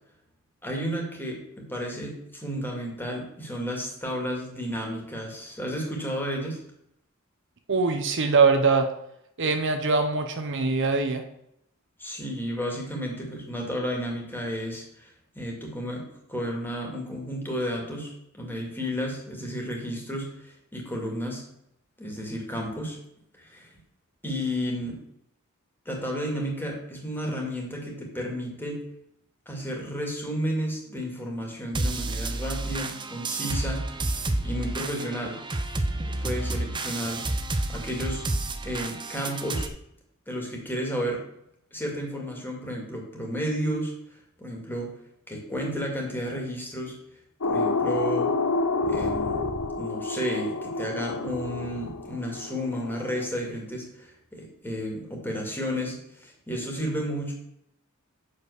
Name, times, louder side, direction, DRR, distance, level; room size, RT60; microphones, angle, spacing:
voice 1, 0.6-6.6 12.0-21.4 22.0-23.0 23.4-23.7 24.2-25.0 25.9-28.9 29.5-34.0 34.4-35.4 36.1-37.3 37.7-38.2 38.6-39.7 40.3-41.2 41.7-43.9 44.4-45.0 45.3-47.0 47.4-48.3 48.9-49.5 49.8-57.3, equal, 10° left, -1 dB, 2.3 m, -32 dB
voice 2, 7.7-8.9 9.4-11.2, right 4 dB, 60° right, 6 dB, 0.9 m, -22 dB
sound 1, 31.7-39.7, right 2 dB, 20° right, 0.7 m, -30 dB
sound 2, 47.4-53.3, left 3 dB, 85° left, 0.9 m, -29 dB
6.8 x 5.3 x 6.5 m, 0.76 s
head